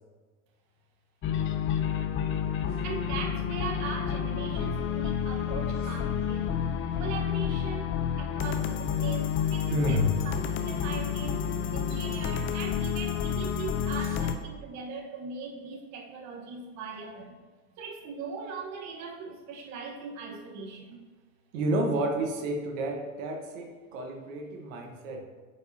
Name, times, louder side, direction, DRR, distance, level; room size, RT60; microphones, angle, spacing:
sound 1, 1.2-14.4, left 8 dB, 30° left, 0.6 m, -30 dB
voice 1, 2.8-6.7 7.0-10.0 10.5-11.4 11.7-17.4 17.8-21.0, right 5 dB, 45° right, 1 dB, 1.2 m, -40 dB
voice 2, 9.7-10.2 14.0-14.1 21.5-25.3, right 1 dB, 75° right, 2 dB, 1.2 m, -30 dB
9.1 x 5.2 x 2.7 m, 1.4 s
hypercardioid pair, 95°, 40 cm